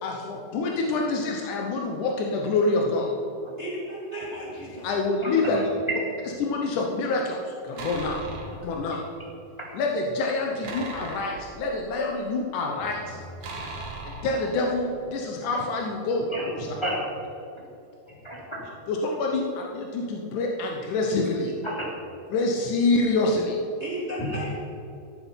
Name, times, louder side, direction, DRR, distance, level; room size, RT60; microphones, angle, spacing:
voice 1, 0.0-3.1 4.8-5.7 6.4-8.2 8.6-9.0 9.8-13.2 14.1-16.6 18.9-21.5 22.3-23.6, left 3 dB, 70° left, 1 dB, 1.9 m, -26 dB
voice 2, 3.6-4.9 7.7-8.1 8.6-8.7 23.8-24.5, equal, 20° right, -5 dB, 1.8 m, -35 dB
voice 3, 5.2-5.6 8.1-8.3 13.6-13.7 16.3-17.0 18.1-18.6 21.6-21.9 24.2-24.4, equal, 5° left, -6 dB, 3.0 m, -33 dB
sound 1, 7.8-8.7 10.6-12.2 13.4-14.9, right 2 dB, 45° right, 2.2 m, -38 dB
13.5 x 12.5 x 5.7 m, 2.8 s
omnidirectional pair, 5.0 m